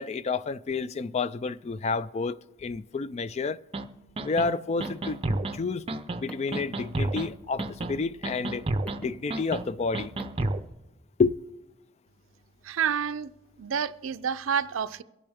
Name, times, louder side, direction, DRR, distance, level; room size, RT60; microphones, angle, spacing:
voice 1, 0.0-3.6 4.2-5.2 5.5-5.9 6.2-8.7 9.0-10.1 11.2-11.3, left 4 dB, 35° left, 0.3 m, -29 dB
sound 1, 3.7-3.8 4.2-4.5 4.8-5.6 5.9-6.2 6.5-7.3 7.6-8.0 8.2-9.0 9.3-9.6 9.9-10.6, right 2 dB, 30° right, 0.5 m, -30 dB
Car, 4.5-10.7, right 1 dB, 5° left, 1.1 m, -45 dB
voice 2, 12.6-13.3 13.6-15.0, right 7 dB, 85° right, 0.5 m, -29 dB
24.0 x 8.6 x 3.5 m
head